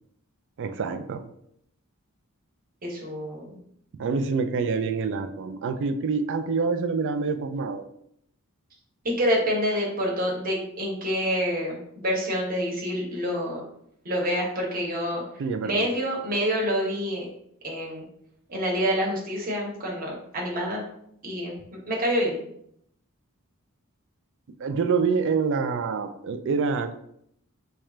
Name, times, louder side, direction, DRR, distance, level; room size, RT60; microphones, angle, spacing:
voice 1, 0.6-1.2 4.0-7.8 15.4-15.9 24.6-27.0, right 5 dB, 60° right, 8 dB, 0.4 m, -26 dB
voice 2, 2.8-3.6 9.2-13.6 14.0-15.2 15.6-17.3 17.6-18.0 18.5-20.8 21.2-21.5 21.9-22.4, equal, 40° right, -2 dB, 1.1 m, -27 dB
3.2 x 2.4 x 4.3 m, 0.72 s
head